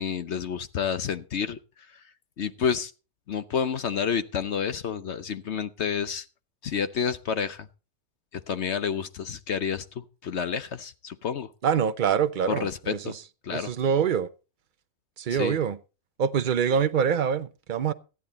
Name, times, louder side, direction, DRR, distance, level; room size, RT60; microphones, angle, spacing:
voice 1, 0.0-1.6 2.4-2.9 3.3-6.2 6.6-7.7 8.3-11.5 12.5-13.1 13.4-13.7 15.3-15.6, left 7 dB, 55° left, 0.9 m, -29 dB
voice 2, 11.6-13.0 13.5-14.3 15.2-15.8 16.2-17.9, right 7 dB, 55° right, 0.5 m, -25 dB
14.0 x 11.0 x 4.1 m
omnidirectional pair, 1.6 m